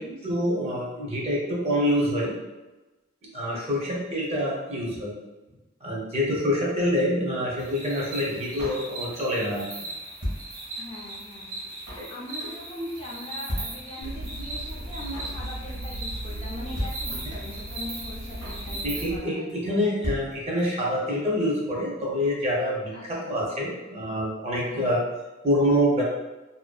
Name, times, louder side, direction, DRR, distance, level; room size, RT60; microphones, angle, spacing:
voice 1, 0.2-2.3 3.3-5.1 5.8-9.6 12.0-12.1 18.8-22.9 23.3-25.0 25.4-26.0, equal, 30° right, -4 dB, 0.6 m, -26 dB
voice 2, 3.5-4.0 5.5-5.6 10.8-20.2 22.9-23.3 24.7-24.9, left 1 dB, 25° left, -5 dB, 0.3 m, -41 dB
sound 1, 7.6-19.0, right 2 dB, 90° right, 0.8 m, -39 dB
Drum kit, 8.6-9.4 9.7-9.8 9.9-11.0 11.3-11.4 11.6-12.1 12.4-12.7 12.9-13.0 13.2-13.3 13.5-14.3 14.6-14.7 14.9-15.4 15.7-16.0 16.2-16.3 16.5-16.6 16.8-17.6 17.9-18.0 18.1-18.7 18.9-19.2 19.5-19.6 19.8-19.9 20.0-20.9 21.1-21.2 21.4-21.5, equal, 60° right, 1.0 m, -35 dB
sound 2, 14.0-19.2, right 1 dB, 85° left, 0.6 m, -37 dB
2.5 x 2.1 x 2.3 m, 1.1 s
head